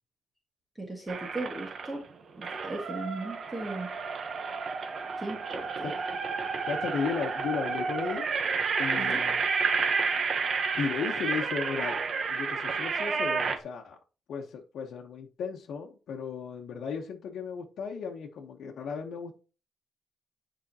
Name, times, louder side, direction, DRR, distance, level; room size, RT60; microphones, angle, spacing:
voice 1, 0.8-2.0 2.4-3.9 5.2-5.9 9.0-9.2, right 2 dB, 15° right, 0 dB, 1.5 m, -37 dB
sound 1, 1.1-2.0 2.4-13.6, right 5 dB, 45° right, 0.9 m, -30 dB
voice 2, 6.7-8.2 8.8-9.4 10.8-12.0 12.3-14.0 14.3-19.4, left 6 dB, 80° left, 0 dB, 0.9 m, -35 dB
10.0 x 5.0 x 2.8 m, 0.33 s
wide cardioid pair, 165°, 0 cm